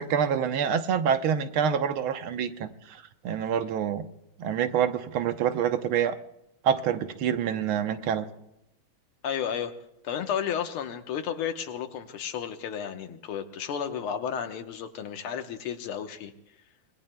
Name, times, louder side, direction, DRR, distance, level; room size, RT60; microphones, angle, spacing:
voice 1, 0.0-3.0 3.2-4.1 4.4-6.1 6.6-8.3, right 8 dB, 80° right, 9 dB, 1.7 m, -26 dB
voice 2, 9.2-9.7 10.0-16.3, left 8 dB, 85° left, 6 dB, 2.0 m, -32 dB
26.0 x 20.5 x 2.2 m, 0.82 s
omnidirectional pair, 2.3 m